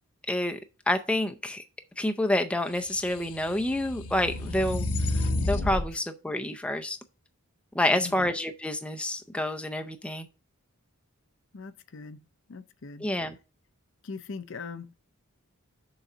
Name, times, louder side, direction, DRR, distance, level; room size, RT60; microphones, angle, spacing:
voice 1, 0.3-0.6 0.9-1.6 2.0-4.9 5.1-7.0 7.7-10.3 13.0-13.4, left 1 dB, 5° left, 0.4 m, -28 dB
sound 1, 2.9-5.9, left 2 dB, 85° left, 1.0 m, -30 dB
voice 2, 7.9-8.3 11.5-12.2 12.5-13.1 14.0-14.9, left 4 dB, 55° left, 0.5 m, -41 dB
6.6 x 4.0 x 6.0 m
head